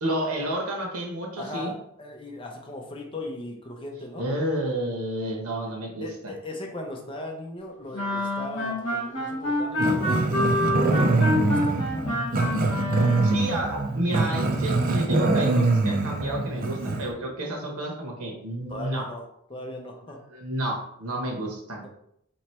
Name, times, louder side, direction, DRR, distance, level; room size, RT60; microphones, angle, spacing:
voice 1, 0.0-1.7 4.2-6.1 13.2-19.0 20.3-21.8, right 1 dB, 85° right, 0 dB, 1.1 m, -30 dB
voice 2, 1.4-4.3 6.0-10.2 10.7-12.4 18.7-19.2 19.5-20.2, left 2 dB, 25° left, 1 dB, 0.6 m, -38 dB
sound 1, 7.9-13.6, left 1 dB, 55° left, 1.3 m, -27 dB
Growling, 9.8-17.1, right 2 dB, 40° right, 0.5 m, -24 dB
3.2 x 3.0 x 4.3 m, 0.73 s
head